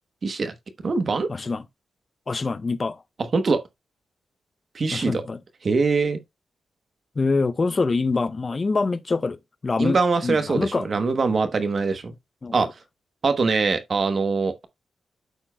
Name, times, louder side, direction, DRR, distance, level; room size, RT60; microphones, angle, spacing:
voice 1, 0.2-0.5 0.8-1.3 3.2-3.6 4.7-5.2 5.6-6.2 9.8-12.1 12.5-12.7 13.2-14.6, right 4 dB, 45° right, 1.0 m, -23 dB
voice 2, 1.3-1.6 2.3-3.0 4.9-5.4 7.2-10.0 10.2-10.9 12.4-12.7, left 3 dB, 35° left, 0.6 m, -25 dB
13.0 x 4.4 x 2.3 m
cardioid pair, 100°, 0 cm